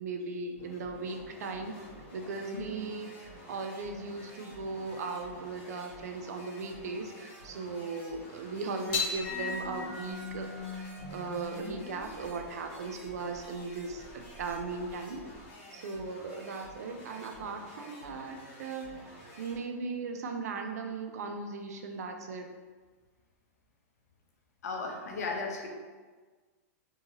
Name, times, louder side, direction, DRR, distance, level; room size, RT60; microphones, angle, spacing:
voice 1, 0.0-1.8 2.1-15.3 15.7-22.5, right 4 dB, 85° right, 5 dB, 0.4 m, -38 dB
sound 1, 0.5-19.6, equal, 55° left, 1.3 m, -51 dB
sound 2, 8.9-15.5, left 4 dB, 35° left, 0.7 m, -39 dB
voice 2, 24.6-25.7, left 3 dB, 90° left, 0 dB, 0.6 m, -35 dB
2.7 x 2.7 x 2.6 m, 1.4 s
supercardioid pair, 155°, 8 cm